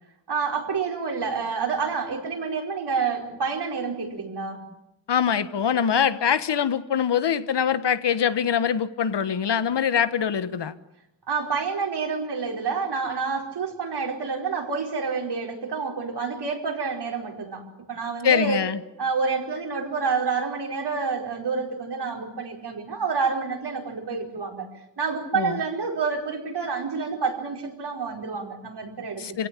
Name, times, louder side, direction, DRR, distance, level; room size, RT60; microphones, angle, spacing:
voice 1, 0.3-4.6 11.3-17.6 17.9-18.6 19.0-24.7 25.0-29.2, right 5 dB, 65° right, 3 dB, 4.9 m, -28 dB
voice 2, 5.1-10.7 18.2-18.8 25.3-25.6 29.2-29.5, left 8 dB, 70° left, 13 dB, 1.4 m, -23 dB
27.5 x 17.0 x 9.8 m, 0.88 s
wide cardioid pair, 165°, 43 cm